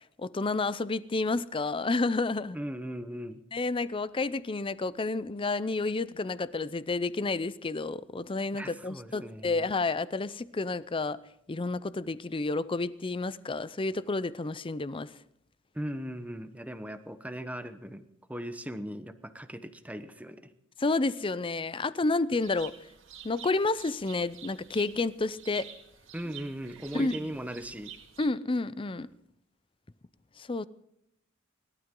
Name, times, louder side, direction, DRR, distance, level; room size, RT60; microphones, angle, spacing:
voice 1, 0.2-2.6 3.5-11.2 11.5-15.1 20.8-22.7 23.2-25.7 26.9-27.3 28.2-29.1 30.4-30.7, left 3 dB, 25° left, 0.5 m, -30 dB
voice 2, 2.5-3.4 8.5-9.7 15.7-18.0 18.3-20.5 26.1-27.9, equal, 5° right, 0.9 m, -38 dB
sound 1, 22.4-28.3, right 9 dB, 65° right, 2.1 m, -49 dB
28.5 x 12.5 x 3.8 m
head